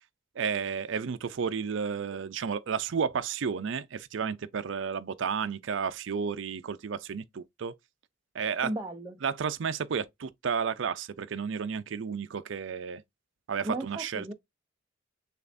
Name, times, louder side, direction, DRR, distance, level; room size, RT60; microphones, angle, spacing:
voice 1, 0.4-7.7 8.3-8.7 9.2-13.0 13.5-14.3, right 6 dB, 70° right, 0.4 m, -32 dB
voice 2, 8.6-9.2 13.6-14.3, right 1 dB, 15° right, 0.5 m, -35 dB
6.7 x 2.4 x 2.5 m
head